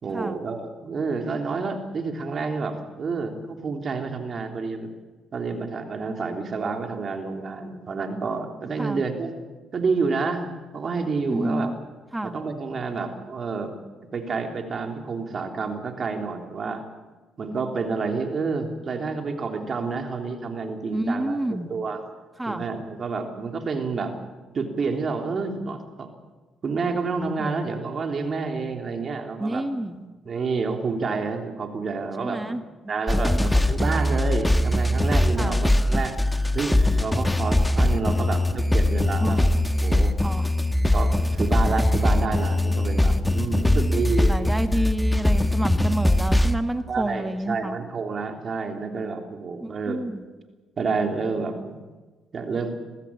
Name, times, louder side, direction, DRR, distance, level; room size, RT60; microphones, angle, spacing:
voice 1, 0.0-4.9 5.3-9.3 9.7-10.5 10.7-11.7 12.2-13.7 14.1-16.8 17.4-22.0 22.5-24.1 24.5-26.1 26.6-29.6 30.2-32.6 32.9-36.3 36.5-39.5 39.8-40.1 40.9-44.3 46.9-50.0 50.8-51.8 52.3-52.7, right 4 dB, 45° right, 4 dB, 3.3 m, -29 dB
voice 2, 11.3-11.8 12.1-12.4 20.9-21.7 22.4-22.6 27.4-27.5 29.4-30.1 32.2-32.6 33.2-33.5 35.4-35.6 38.1-38.2 39.2-39.4 40.2-40.5 43.4-47.8 49.6-50.2, right 1 dB, 10° right, 8 dB, 1.6 m, -29 dB
sound 1, 33.1-46.6, left 1 dB, 10° left, 1.3 m, -21 dB
22.0 x 15.0 x 8.8 m, 1.3 s
cardioid pair, 90°, 0 cm